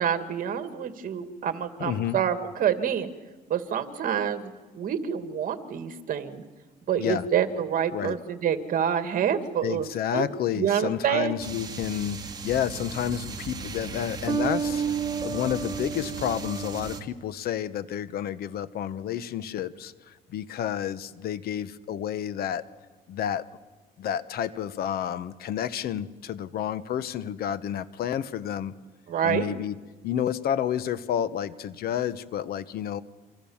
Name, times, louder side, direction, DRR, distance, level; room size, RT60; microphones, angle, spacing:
voice 1, 0.0-3.1 3.5-6.4 6.9-9.9 10.1-10.3 10.6-11.3 29.1-29.5, right 8 dB, 55° right, 8 dB, 2.2 m, -27 dB
voice 2, 1.8-2.2 7.0-7.2 7.9-8.2 9.6-15.0 15.2-22.6 23.1-23.5 24.0-28.7 29.2-29.7 30.0-33.0, left 10 dB, 65° left, 14 dB, 1.2 m, -30 dB
sound 1, 11.4-17.0, right 6 dB, 25° right, 2.6 m, -32 dB
28.5 x 25.5 x 7.3 m, 1.2 s
cardioid pair, 110°, 17 cm